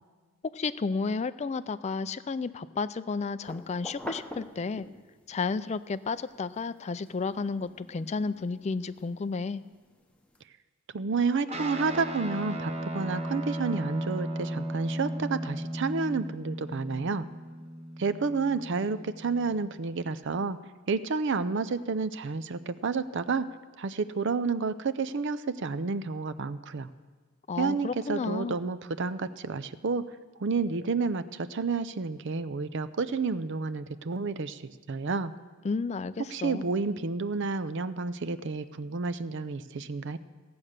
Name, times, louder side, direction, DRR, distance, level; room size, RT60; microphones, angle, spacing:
voice 1, 0.5-4.9 5.3-9.6 27.5-28.6 35.6-36.7, left 4 dB, 30° left, 14 dB, 0.3 m, -32 dB
sound 1, 3.4-5.3 5.7-10.4, left 1 dB, 5° left, 0.8 m, -46 dB
voice 2, 10.9-17.3 18.0-20.6 20.9-23.5 23.8-26.9 27.6-30.0 30.4-34.6 34.9-35.3 36.3-40.2, right 4 dB, 55° right, 12 dB, 0.5 m, -30 dB
Guitar, 11.5-20.2, right 1 dB, 30° right, 1.0 m, -36 dB
16.5 x 8.7 x 6.6 m, 1.4 s
head